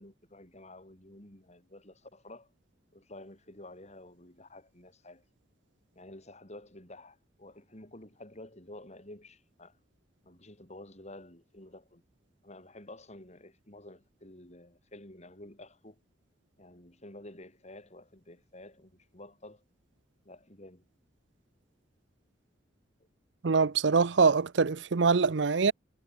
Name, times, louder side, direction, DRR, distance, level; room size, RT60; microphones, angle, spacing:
voice 1, 0.0-2.5 2.9-5.2 5.9-9.8 10.2-12.0 12.4-16.0 16.6-19.6 20.2-20.9, left 1 dB, 40° left, 6.3 m, -50 dB
voice 2, 23.4-25.7, right 5 dB, 70° right, 0.6 m, -24 dB
head